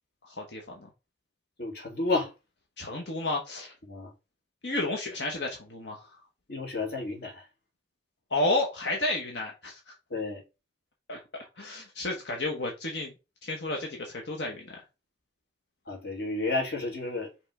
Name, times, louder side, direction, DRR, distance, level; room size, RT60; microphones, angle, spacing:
voice 1, 0.3-0.9 2.8-3.7 4.6-6.2 8.3-9.9 11.1-11.2 11.6-13.1 13.4-14.8, left 2 dB, 80° left, 1.2 m, -32 dB
voice 2, 1.6-2.3 3.9-4.1 6.5-7.4 10.1-10.4 15.9-17.3, left 2 dB, 60° left, 2.3 m, -31 dB
5.6 x 3.5 x 4.9 m
head